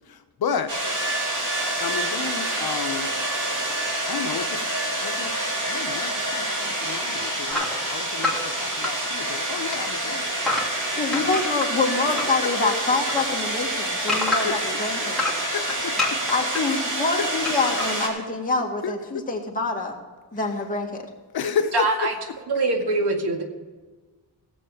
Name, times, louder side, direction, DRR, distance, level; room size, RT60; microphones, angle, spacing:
voice 1, 0.1-0.7 1.8-3.1 4.1-4.6 5.0-5.3 5.6-10.5 11.1-11.4 12.1-12.7 14.1-14.5 15.5-16.2 18.8-19.2 21.3-22.1, left 7 dB, 70° left, 7 dB, 1.0 m, -32 dB
sound 1, 0.7-18.1, right 1 dB, 50° right, 3.1 m, -27 dB
sound 2, 7.5-9.4 9.6-12.4 12.7-14.7 15.1-16.6 17.4-17.9, left 2 dB, ahead, 2.6 m, -28 dB
voice 2, 11.0-15.2 16.3-20.0 20.3-21.0, left 3 dB, 20° left, -1 dB, 2.1 m, -26 dB
voice 3, 21.7-22.1 22.5-23.4, right 2 dB, 85° right, 2 dB, 2.1 m, -23 dB
17.0 x 8.1 x 5.0 m, 1.3 s
wide cardioid pair, 145°, 38 cm